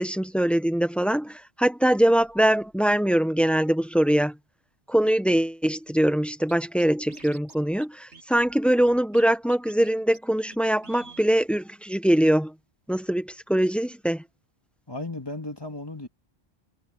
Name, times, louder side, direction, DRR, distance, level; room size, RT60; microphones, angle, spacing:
voice 1, 0.0-4.4 4.9-12.5 12.9-14.2, right 1 dB, ahead, 0.8 m, -23 dB
Scratching (performance technique), 6.5-6.6 6.8-7.5 7.8-7.9 8.1-9.2 9.5-9.9 10.1-10.2 10.5-10.6 10.8-11.3, right 3 dB, 85° right, 2.5 m, -48 dB
voice 2, 14.9-16.1, left 2 dB, 20° left, 2.2 m, -35 dB
omnidirectional pair, 1.1 m